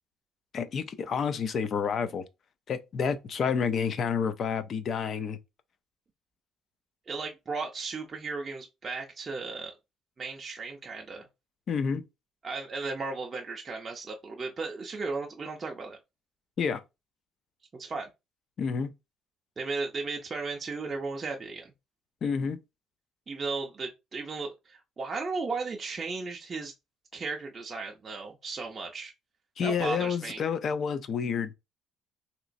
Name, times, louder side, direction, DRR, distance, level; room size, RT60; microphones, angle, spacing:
voice 1, 0.5-2.2 2.7-5.4 11.7-12.0 16.6-16.8 18.6-18.9 22.2-22.6 29.6-31.5, left 6 dB, 40° left, 0.4 m, -29 dB
voice 2, 7.1-9.7 10.2-11.3 12.4-16.0 17.7-18.1 19.6-21.7 23.3-26.7 27.1-29.1 29.6-30.4, right 4 dB, 25° right, 0.4 m, -35 dB
3.1 x 2.9 x 2.5 m
cardioid pair, 160°, 0 cm